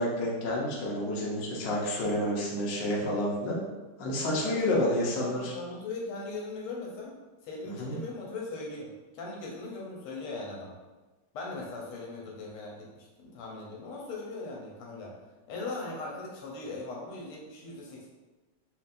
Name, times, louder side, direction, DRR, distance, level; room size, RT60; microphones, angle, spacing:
voice 1, 0.0-3.6 4.0-5.5 7.8-8.0, left 1 dB, 60° left, -4 dB, 1.4 m, -29 dB
voice 2, 4.4-7.1 7.4-10.7 11.3-15.1 15.5-18.1, left 3 dB, 85° left, -3 dB, 1.7 m, -39 dB
4.5 x 3.0 x 2.5 m, 1.2 s
omnidirectional pair, 2.4 m